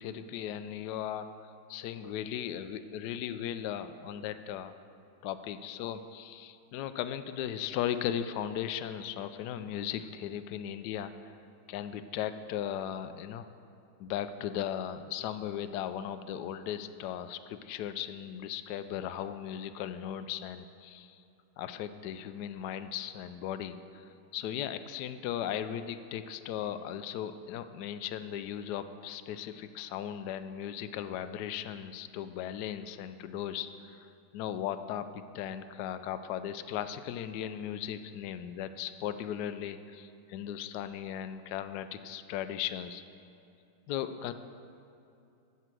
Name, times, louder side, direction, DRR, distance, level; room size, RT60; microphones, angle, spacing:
voice 1, 0.0-4.7 5.2-11.3 11.7-13.5 14.0-21.2 21.6-24.0 24.3-43.0 43.9-44.3, left 10 dB, 80° left, 10 dB, 0.9 m, -37 dB
14.0 x 5.7 x 7.6 m, 2.6 s
omnidirectional pair, 2.3 m